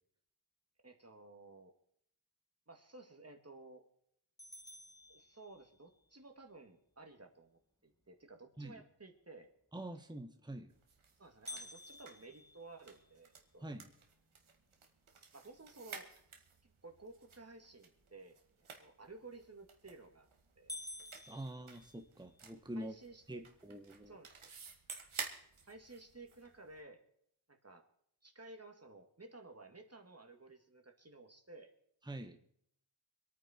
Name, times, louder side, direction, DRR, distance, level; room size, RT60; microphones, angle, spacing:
voice 1, 0.8-1.7 2.7-3.9 5.1-9.5 11.2-13.7 15.3-16.1 16.6-20.3 20.6-20.8 22.8-23.4 24.1-24.5 25.7-27.0 27.5-27.9 28.2-31.7, right 3 dB, 30° right, 4 dB, 2.3 m, -55 dB
sound 1, 4.4-6.0 11.5-13.6 14.1-14.2 14.7-14.8 15.5-15.8 19.4-19.8 20.2-20.3 20.7-22.4, left 2 dB, 5° left, 1.1 m, -51 dB
voice 2, 9.7-10.7 13.6-13.9 21.3-22.9 23.3-24.1 32.0-32.4, right 1 dB, 10° right, 5 dB, 1.3 m, -45 dB
sound 2, 10.7-26.8, right 5 dB, 80° right, 2.1 m, -53 dB
25.0 x 9.4 x 4.5 m, 0.68 s
wide cardioid pair, 70°, 49 cm